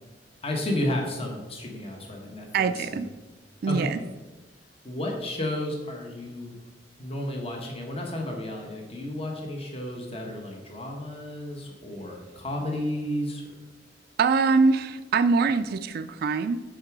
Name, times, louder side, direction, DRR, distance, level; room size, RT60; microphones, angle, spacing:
voice 1, 0.4-3.0 3.7-3.9 4.8-6.6 7.0-13.4, left 1 dB, 35° left, 1 dB, 1.1 m, -32 dB
voice 2, 2.5-3.1 3.6-4.0 14.2-16.6, right 4 dB, 55° right, 9 dB, 0.3 m, -23 dB
6.5 x 4.9 x 6.0 m, 1.2 s
head